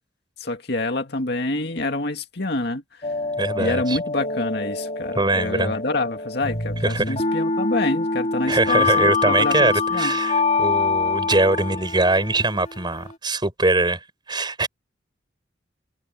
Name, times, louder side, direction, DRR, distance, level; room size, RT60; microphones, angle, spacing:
voice 1, 0.4-3.1 3.6-10.2, left 2 dB, 65° left, 2.2 m, -27 dB
sound 1, 3.0-13.1, left 4 dB, 40° left, 3.2 m, -25 dB
voice 2, 3.4-4.0 5.1-5.7 6.8-7.1 8.5-14.0 14.3-14.7, right 2 dB, 25° right, 4.9 m, -22 dB
head